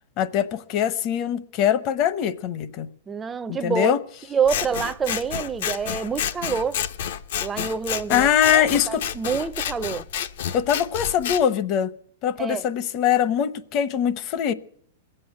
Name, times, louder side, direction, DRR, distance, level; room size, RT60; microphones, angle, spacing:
voice 1, 0.2-2.9 3.5-4.0 8.1-9.0 10.5-11.9 12.2-14.5, left 9 dB, 40° left, 0.9 m, -22 dB
voice 2, 3.1-3.9 4.3-6.8 7.4-10.0 12.4-12.6, right 6 dB, 15° right, 0.5 m, -27 dB
Scissors, 4.5-11.4, left 9 dB, 70° left, 0.9 m, -30 dB
21.0 x 7.8 x 8.8 m
hypercardioid pair, 145°, 0 cm